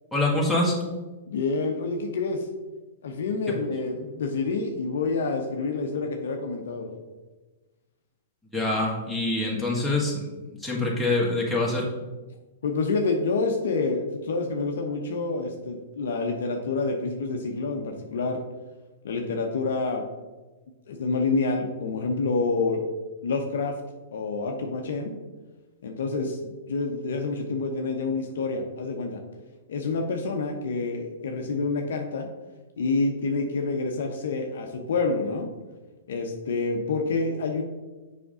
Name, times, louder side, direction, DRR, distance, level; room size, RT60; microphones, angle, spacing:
voice 1, 0.1-0.8 8.5-11.9, left 2 dB, ahead, -5 dB, 1.6 m, -25 dB
voice 2, 1.3-2.5 3.0-6.9 12.6-18.4 19.0-20.1 20.9-22.9 23.2-23.7 24.1-25.2 25.8-29.2 29.7-32.3 32.8-35.5 36.1-37.6, left 3 dB, 65° left, 3 dB, 0.7 m, -28 dB
6.9 x 5.2 x 3.7 m, 1.2 s
figure-of-eight pair, 110°, 0 cm